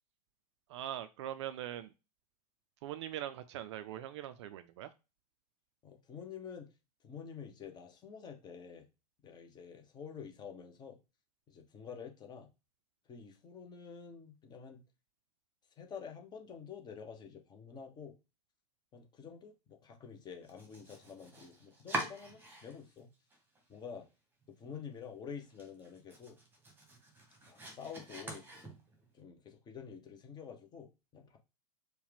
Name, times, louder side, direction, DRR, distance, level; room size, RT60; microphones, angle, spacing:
voice 1, 0.7-1.9 2.8-4.9, right 11 dB, 45° right, 0.5 m, -42 dB
voice 2, 5.8-6.7 7.0-8.9 9.2-11.0 11.5-12.5 13.1-14.8 15.8-18.2 18.9-23.1 23.7-24.1 24.6-26.4 27.4-28.5 29.1-31.4, left 6 dB, 20° left, 0.9 m, -48 dB
Domestic sounds home sounds, 20.4-23.0 23.3-24.1 24.4-24.5 24.9-25.0 25.4-29.1, right 2 dB, 10° right, 1.2 m, -45 dB
4.6 x 2.3 x 3.4 m
figure-of-eight pair, 95°, 21 cm